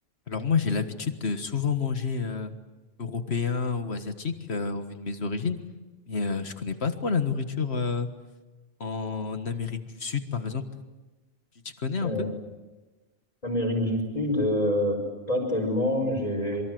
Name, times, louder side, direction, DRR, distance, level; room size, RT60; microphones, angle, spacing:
voice 1, 0.3-2.5 3.0-5.6 6.1-8.1 8.8-10.7 11.8-12.3, left 5 dB, 60° left, 8 dB, 1.8 m, -29 dB
voice 2, 13.4-15.0 15.3-16.6, left 1 dB, 30° left, -5 dB, 5.3 m, -26 dB
27.0 x 24.5 x 7.8 m, 1.2 s
omnidirectional pair, 1.3 m